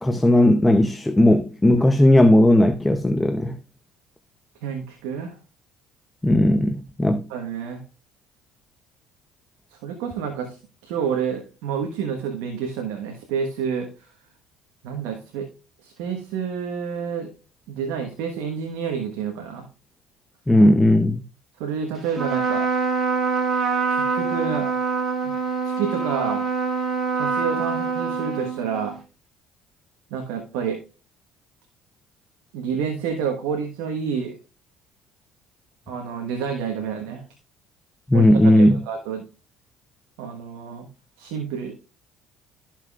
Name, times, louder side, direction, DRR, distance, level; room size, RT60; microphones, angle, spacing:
voice 1, 0.0-3.6 6.2-7.2 20.5-21.2 38.1-38.8, left 1 dB, 10° left, 0.7 m, -16 dB
voice 2, 4.6-5.4 7.3-7.8 9.7-10.6 10.8-13.9 14.8-15.5 15.8-17.3 17.7-19.7 21.6-22.7 23.9-24.7 25.2-25.4 25.6-26.4 27.1-29.0 30.1-30.8 32.5-34.4 35.9-37.2 38.1-39.2 40.2-40.9 41.2-41.7, right 7 dB, 80° right, 1.2 m, -29 dB
Trumpet, 22.1-29.0, right 5 dB, 50° right, 2.0 m, -25 dB
13.0 x 5.9 x 2.4 m
hypercardioid pair, 65°, 0 cm